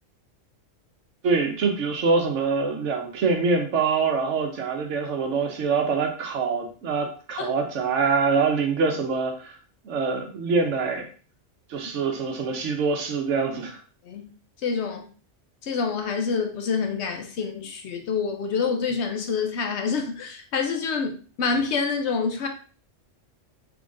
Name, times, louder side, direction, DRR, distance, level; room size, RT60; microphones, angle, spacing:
voice 1, 1.2-9.5 9.8-11.1 11.7-13.8, right 4 dB, 70° right, 1.1 m, -24 dB
voice 2, 14.6-15.1 15.6-22.5, left 5 dB, 65° left, 0.8 m, -27 dB
3.8 x 3.4 x 2.4 m
omnidirectional pair, 1.3 m